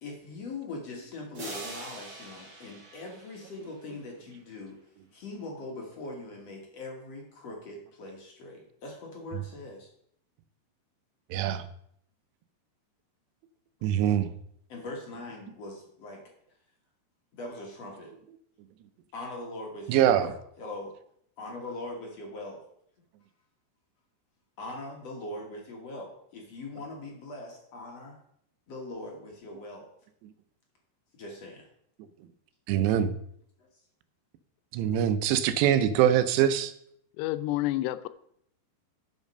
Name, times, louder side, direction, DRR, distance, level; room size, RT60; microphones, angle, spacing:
voice 1, 0.0-4.8 5.1-9.9 14.7-16.2 17.3-18.1 19.1-20.3 20.6-20.9 21.4-22.6 24.6-28.2 28.7-29.9 31.2-31.7, left 2 dB, 55° left, 1.9 m, -41 dB
sound 1, 1.3-4.0, right 2 dB, 35° right, 2.8 m, -43 dB
voice 2, 11.3-11.6 13.8-14.3 19.9-20.3 32.7-33.1 34.7-36.7, right 10 dB, 90° right, 2.9 m, -23 dB
voice 3, 37.2-38.1, left 16 dB, 85° left, 2.7 m, -29 dB
10.5 x 6.5 x 5.4 m
omnidirectional pair, 4.8 m